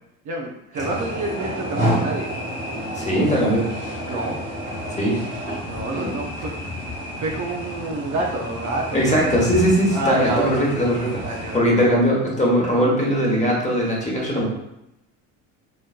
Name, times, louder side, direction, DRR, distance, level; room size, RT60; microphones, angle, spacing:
voice 1, 0.2-2.3 4.1-4.4 5.7-6.5 7.2-9.3 9.9-10.7 11.2-11.6, right 2 dB, 45° right, -1 dB, 0.7 m, -28 dB
sound 1, 0.7-11.6, equal, 30° right, 1.2 m, -30 dB
voice 2, 2.9-3.6 4.9-5.2 8.9-14.4, equal, 15° left, -3 dB, 1.2 m, -20 dB
3.1 x 3.0 x 2.4 m, 0.86 s
supercardioid pair, 80°, 40 cm